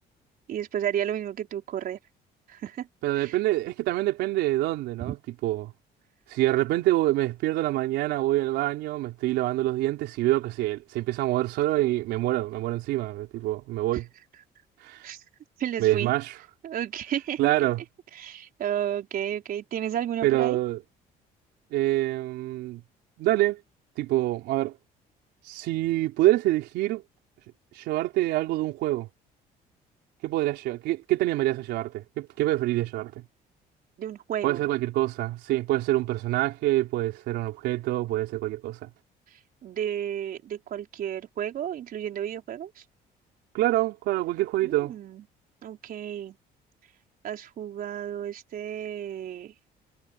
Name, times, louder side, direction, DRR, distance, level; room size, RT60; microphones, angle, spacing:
voice 1, 0.5-2.0 2.5-2.9 3.2-3.4 5.0-5.1 15.0-15.2 15.6-16.1 16.6-17.4 18.1-20.6 34.0-34.6 39.3-42.8 44.6-45.2 45.6-46.4 47.2-49.5, right 10 dB, 60° right, 4.3 m, -32 dB
voice 2, 3.0-5.2 5.4-5.7 6.3-14.0 14.8-15.1 15.8-16.3 17.4-17.8 20.2-20.8 21.7-22.8 23.2-23.6 24.0-24.8 25.4-27.0 27.7-29.1 30.2-33.1 34.4-38.9 43.5-44.9, right 16 dB, 85° right, 3.9 m, -26 dB
cardioid pair, 110°, 17 cm